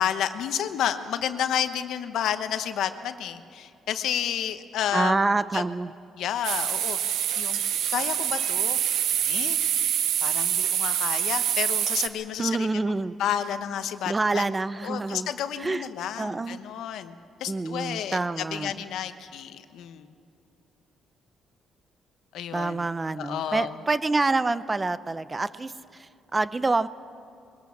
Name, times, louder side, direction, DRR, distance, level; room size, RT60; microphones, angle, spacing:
voice 1, 0.0-5.1 5.5-5.6 6.2-7.6 7.9-8.8 9.2-9.6 10.2-12.7 13.2-14.5 14.8-20.1 22.3-22.9 23.2-23.8, left 9 dB, 80° left, 10 dB, 1.0 m, -31 dB
voice 2, 4.9-5.9 12.4-13.1 14.1-15.3 15.6-15.8 16.2-16.6 17.5-18.7 22.5-25.7 26.0-26.9, right 3 dB, 25° right, 15 dB, 0.6 m, -27 dB
sound 1, 6.4-12.1, right 10 dB, 80° right, 0.9 m, -26 dB
22.5 x 17.5 x 7.2 m, 2.6 s
cardioid pair, 90°, 0 cm